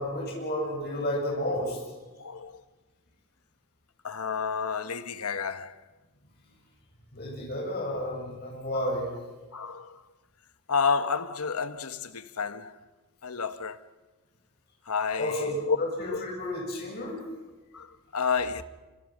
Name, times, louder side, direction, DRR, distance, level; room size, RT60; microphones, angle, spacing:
voice 1, 0.0-1.8 7.1-9.1 15.2-17.2, left 1 dB, 45° left, 7.8 m, -31 dB
voice 2, 2.2-2.6 4.0-5.8 9.5-10.0 10.7-12.8 13.2-13.8 14.9-15.8 16.1-16.3 17.7-18.6, left 5 dB, 80° left, 1.1 m, -30 dB
27.0 x 27.0 x 6.3 m
head